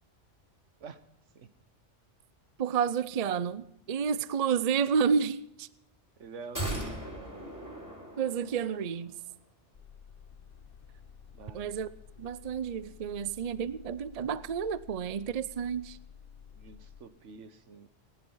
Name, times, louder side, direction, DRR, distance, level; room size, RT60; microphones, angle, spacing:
voice 1, 2.6-5.7 8.2-9.1 11.5-11.9 12.2-16.0, right 7 dB, 45° right, 0.6 m, -30 dB
voice 2, 6.2-7.5 11.3-11.7 16.5-17.9, right 4 dB, 80° right, 1.4 m, -47 dB
sound 1, 6.5-8.9 9.2-9.3, right 1 dB, 15° right, 3.7 m, -38 dB
sound 2, 9.7-17.0, left 7 dB, 50° left, 1.2 m, -52 dB
18.5 x 11.0 x 5.6 m
omnidirectional pair, 1.2 m